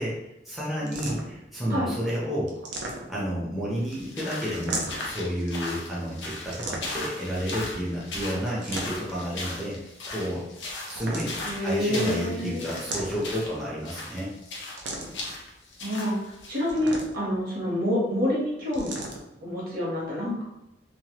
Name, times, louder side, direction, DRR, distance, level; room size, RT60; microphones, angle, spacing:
voice 1, 0.0-2.6 3.1-9.8 10.1-10.5 10.9-11.4 11.6-14.3, equal, ahead, -8 dB, 0.6 m, -31 dB
sound 1, 0.9-1.4 2.5-3.4 4.5-5.2 6.5-7.2 8.5-9.2 10.8-11.6 12.7-13.5 14.8-15.3 16.6-17.4 18.7-19.2, right 2 dB, 80° right, 0.5 m, -36 dB
sound 2, 3.8-16.6, left 2 dB, 80° left, 0.7 m, -38 dB
voice 2, 11.5-12.8 15.8-16.2 16.5-19.0 19.4-20.4, left 1 dB, 55° right, -5 dB, 1.2 m, -27 dB
3.1 x 2.1 x 2.8 m, 0.89 s
head